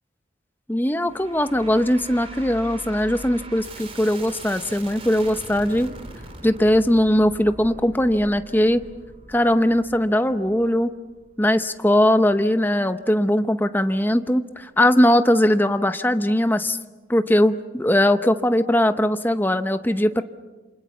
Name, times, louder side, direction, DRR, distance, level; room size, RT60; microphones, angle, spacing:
voice 1, 0.7-5.9 6.4-8.8 9.3-10.9 11.4-16.8 17.1-20.2, left 1 dB, 10° left, 10 dB, 0.8 m, -20 dB
sound 1, 1.1-12.4, right 2 dB, 30° right, 3.5 m, -42 dB
29.0 x 26.5 x 7.2 m, 1.2 s
head